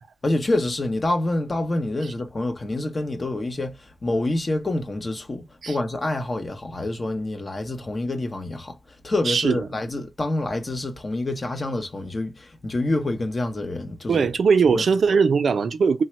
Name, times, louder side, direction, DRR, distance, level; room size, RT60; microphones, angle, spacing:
voice 1, 0.2-8.8 9.0-14.3 14.7-14.8, left 2 dB, 35° left, 0.7 m, -27 dB
voice 2, 9.3-9.6 14.1-16.0, right 5 dB, 80° right, 0.5 m, -20 dB
3.3 x 2.1 x 2.9 m
wide cardioid pair, 140°, 0 cm